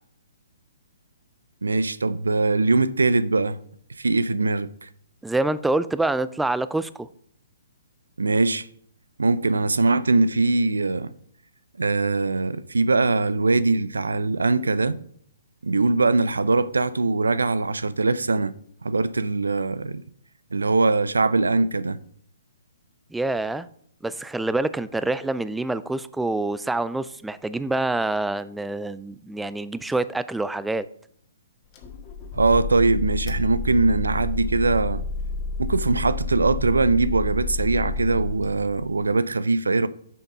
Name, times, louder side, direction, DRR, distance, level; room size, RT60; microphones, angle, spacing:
voice 1, 1.6-3.6 4.0-4.9 8.2-8.7 9.2-11.1 11.8-15.0 15.6-18.5 18.8-20.0 20.5-22.0 32.3-35.0 35.6-39.9, right 3 dB, 85° right, 0.5 m, -22 dB
voice 2, 5.2-7.1 23.1-23.7 24.0-30.9, right 2 dB, 5° right, 0.3 m, -26 dB
sound 1, 31.7-39.1, left 4 dB, 30° left, 1.6 m, -30 dB
7.1 x 5.7 x 5.3 m
hypercardioid pair, 135°, 0 cm